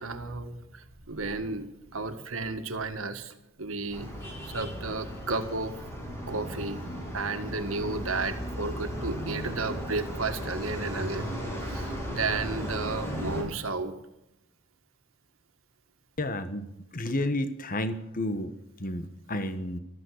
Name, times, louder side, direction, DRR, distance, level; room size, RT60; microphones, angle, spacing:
voice 1, 0.0-1.7 1.9-4.1 4.5-5.7 6.3-6.8 7.1-11.3 11.6-13.9, right 3 dB, 75° right, 7 dB, 1.7 m, -33 dB
sound 1, 3.9-13.4, equal, 15° left, 7.0 m, -36 dB
voice 2, 16.2-16.7 16.9-18.5 18.8-19.8, left 1 dB, 45° left, 10 dB, 1.2 m, -31 dB
14.5 x 14.0 x 6.5 m, 0.87 s
head